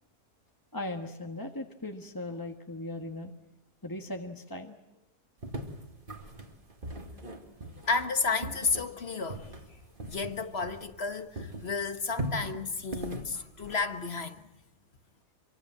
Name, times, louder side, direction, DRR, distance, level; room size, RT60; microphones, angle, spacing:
voice 1, 0.7-3.3 3.8-4.8 7.8-7.9, left 1 dB, 15° left, 1.5 m, -38 dB
sound 1, 5.4-11.1 11.3-14.3, right 1 dB, 35° right, 2.5 m, -40 dB
voice 2, 7.9-9.5 10.1-14.4, left 4 dB, 45° left, 1.5 m, -32 dB
26.0 x 24.5 x 7.6 m
omnidirectional pair, 1.6 m